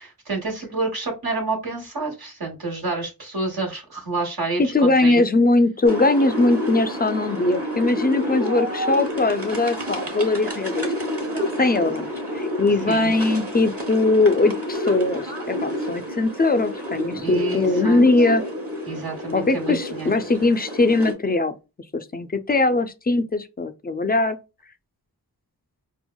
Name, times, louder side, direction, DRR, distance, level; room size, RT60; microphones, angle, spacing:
voice 1, 0.0-5.2 12.9-13.1 17.1-18.0 18.9-20.1, right 3 dB, 70° right, 1.3 m, -29 dB
voice 2, 4.6-10.8 11.6-12.1 12.3-18.4 19.3-21.6 21.9-24.4, left 2 dB, 25° left, 0.4 m, -20 dB
sound 1, 5.9-21.1, left 1 dB, 35° right, 1.1 m, -29 dB
4.5 x 2.0 x 2.2 m
cardioid pair, 45°, 39 cm